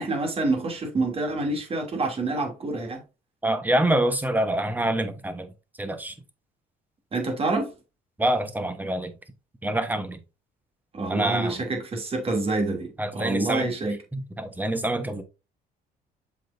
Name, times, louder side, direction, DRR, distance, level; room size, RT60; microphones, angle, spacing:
voice 1, 0.0-3.0 7.1-7.7 10.9-14.0, right 2 dB, 35° right, 3.0 m, -27 dB
voice 2, 3.4-5.5 5.8-6.2 8.2-9.1 9.6-10.2 11.1-11.6 13.0-13.7 14.1-15.2, right 1 dB, 10° right, 1.3 m, -26 dB
7.5 x 5.3 x 2.7 m
cardioid pair, 110°, 17 cm